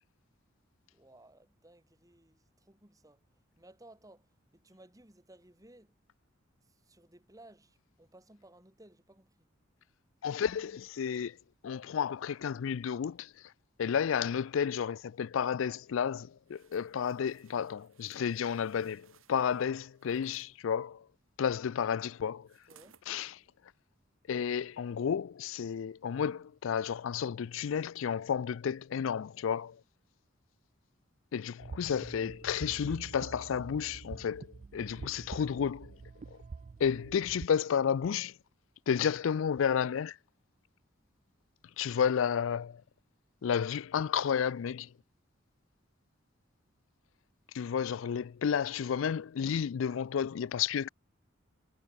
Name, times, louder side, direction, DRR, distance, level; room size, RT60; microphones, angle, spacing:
voice 1, 0.9-3.2 3.6-6.0 6.6-9.5 22.7-23.0 33.2-33.3, right 1 dB, 15° right, 2.8 m, -58 dB
voice 2, 10.2-11.4 11.6-13.3 13.8-21.1 21.4-22.5 23.1-23.3 24.3-29.8 31.3-36.0 36.3-36.4 36.8-38.3 38.9-40.2 41.8-42.8 43.4-44.9 47.5-50.9, left 7 dB, 70° left, 0.4 m, -32 dB
sound 1, 16.5-20.5 22.5-23.1 23.6-23.7, right 6 dB, 85° right, 6.0 m, -64 dB
sound 2, 31.6-37.5, right 4 dB, 35° right, 0.3 m, -46 dB
head